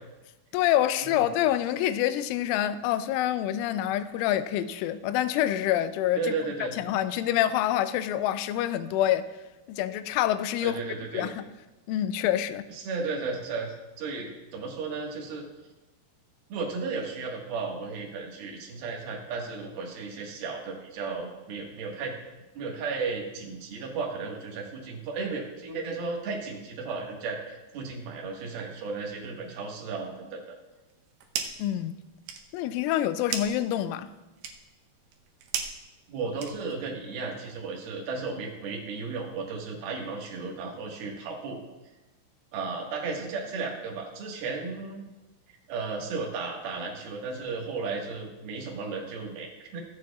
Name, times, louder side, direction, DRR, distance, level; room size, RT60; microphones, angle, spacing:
voice 1, 0.5-6.3 6.8-9.3 9.7-10.8 11.1-11.5 11.9-12.6 31.6-31.9 32.5-34.1, left 12 dB, 85° left, 3.0 m, -26 dB
voice 2, 6.2-6.7 10.6-11.3 12.7-15.4 16.5-22.1 22.5-30.5 36.1-41.6 42.5-45.0 45.7-49.8, right 4 dB, 60° right, 3.1 m, -34 dB
sound 1, 30.9-31.7 32.0-36.9, right 7 dB, 75° right, 2.3 m, -37 dB
22.5 x 7.6 x 2.4 m
omnidirectional pair, 5.5 m